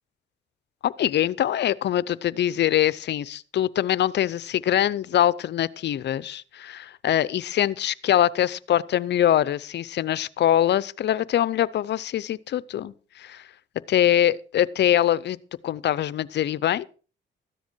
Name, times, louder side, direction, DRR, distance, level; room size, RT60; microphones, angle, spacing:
voice 1, 0.8-13.4 13.9-15.4 15.6-16.9, left 11 dB, 60° left, 0.6 m, -23 dB
13.5 x 10.0 x 4.5 m
cardioid pair, 90°, 20 cm